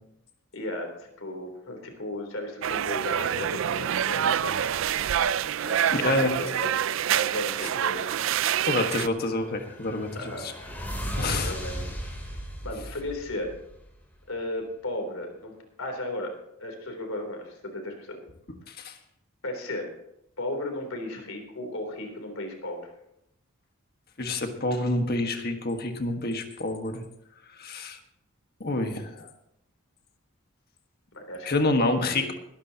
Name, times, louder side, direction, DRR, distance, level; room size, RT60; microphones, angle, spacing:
voice 1, 0.5-0.9 1.2-4.5 5.6-6.7 7.1-8.1 10.1-10.8 11.4-11.9 12.6-13.6 14.3-16.3 16.6-18.2 19.4-19.9 20.4-22.9 31.1-32.3, left 1 dB, 80° left, 3 dB, 3.4 m, -35 dB
sound 1, 2.6-9.1, right 9 dB, 65° right, 0.4 m, -26 dB
voice 2, 5.9-6.4 8.7-10.5 11.2-11.5 18.7-18.9 24.2-27.0 27.6-28.0 28.6-29.3 31.4-32.3, left 2 dB, 45° left, 5 dB, 1.6 m, -27 dB
sound 2, 9.1-14.1, equal, 10° left, 3.3 m, -36 dB
20.5 x 12.5 x 2.9 m, 0.80 s
head